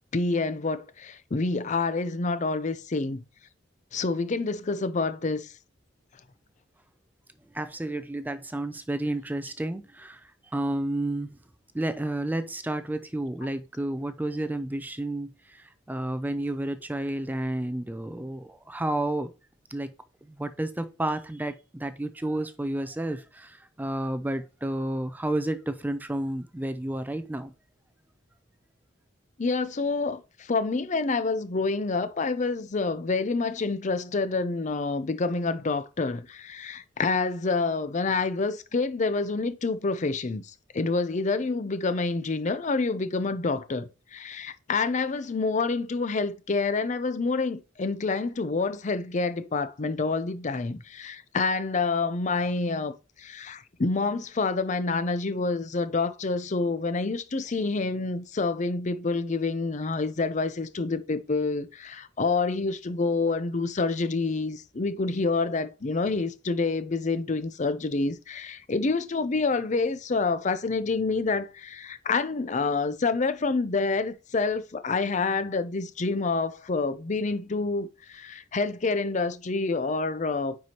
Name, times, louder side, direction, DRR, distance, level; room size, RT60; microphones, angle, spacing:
voice 1, 0.1-3.2 3.9-5.5 29.4-80.6, left 3 dB, 40° left, 0.5 m, -28 dB
voice 2, 7.5-11.4 11.7-19.3 19.7-19.9 20.3-27.5, right 1 dB, 10° right, 0.4 m, -31 dB
9.3 x 4.7 x 2.9 m
head